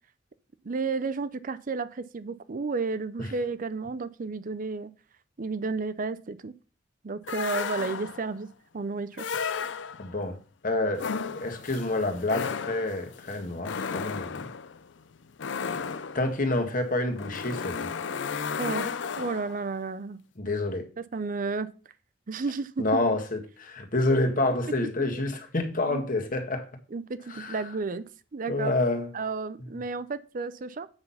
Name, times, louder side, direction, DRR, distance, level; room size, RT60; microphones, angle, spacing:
voice 1, 0.6-4.9 5.4-6.5 7.0-8.5 8.7-9.2 18.6-18.9 19.2-20.2 21.0-21.7 22.3-23.0 25.1-25.2 25.9-26.0 26.9-28.0 28.3-28.8 29.1-30.9, right 4 dB, 45° right, 0.5 m, -32 dB
sound 1, 7.3-8.3 9.1-10.2 10.9-19.7, left 6 dB, 75° left, 0.5 m, -34 dB
voice 2, 10.0-10.4 10.6-11.1 11.3-14.5 16.1-17.9 20.4-20.9 22.8-26.7 27.3-27.6 28.5-29.1, left 2 dB, 50° left, 1.6 m, -28 dB
7.9 x 6.1 x 5.6 m
head